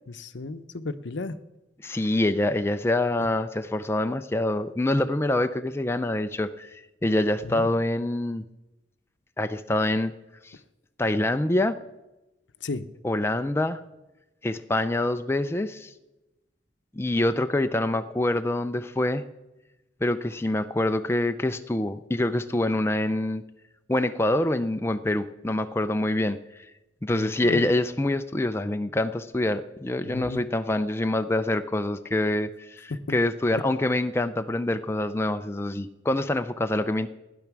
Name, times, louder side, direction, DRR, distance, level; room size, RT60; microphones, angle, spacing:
voice 1, 0.1-1.4 7.4-7.7 12.6-12.9 27.1-27.7 30.1-30.4 33.1-33.2, left 3 dB, 75° left, 12 dB, 0.7 m, -34 dB
voice 2, 1.8-8.4 9.4-10.1 10.4-10.5 11.0-11.8 13.0-13.8 14.4-15.9 16.9-19.2 20.0-23.4 23.9-26.4 27.0-37.1, left 1 dB, 15° left, 8 dB, 0.4 m, -25 dB
15.5 x 10.5 x 6.0 m, 1.0 s
head